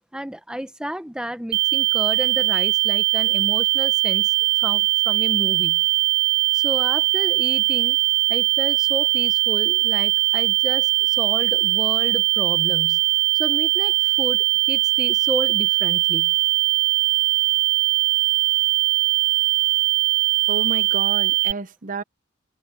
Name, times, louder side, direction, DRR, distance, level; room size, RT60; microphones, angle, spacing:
voice 1, 0.1-5.8 6.5-8.0 8.3-13.0 13.4-16.3, equal, 5° right, 1.2 m, -32 dB
sound 1, 1.5-21.5, right 20 dB, 60° right, 0.4 m, -20 dB
voice 2, 20.5-22.0, right 3 dB, 45° right, 0.9 m, -31 dB
head